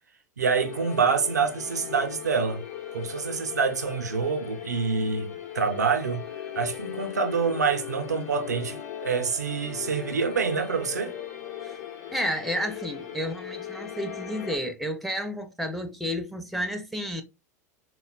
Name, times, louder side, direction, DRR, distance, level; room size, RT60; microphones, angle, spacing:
voice 1, 0.4-2.6 2.9-6.2 6.6-8.8 9.0-11.1, right 5 dB, 90° right, 0.5 m, -26 dB
sound 1, 0.5-14.6, left 9 dB, 65° left, 0.8 m, -38 dB
voice 2, 12.1-17.2, equal, ahead, 0.4 m, -31 dB
3.7 x 2.1 x 2.2 m
hypercardioid pair, 90°, 9 cm